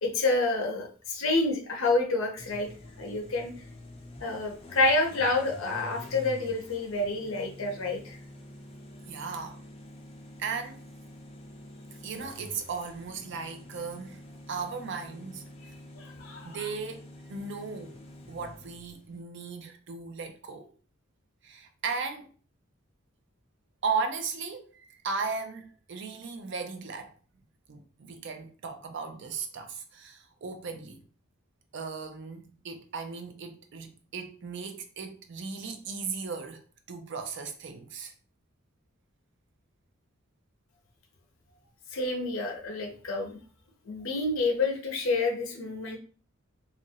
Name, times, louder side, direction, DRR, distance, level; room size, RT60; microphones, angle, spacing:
voice 1, 0.0-2.7 3.0-3.5 4.2-8.2 16.0-16.7 41.9-43.4 43.9-46.0, left 2 dB, 70° left, 0.7 m, -28 dB
sound 1, 2.4-19.2, left 1 dB, 25° left, 0.4 m, -47 dB
voice 2, 9.1-9.6 10.4-10.8 12.0-14.2 14.5-15.5 16.4-18.0 18.3-20.7 21.4-22.3 23.8-27.1 27.7-31.0 31.7-38.1, right 5 dB, 55° right, 0.4 m, -36 dB
2.9 x 2.5 x 2.7 m
head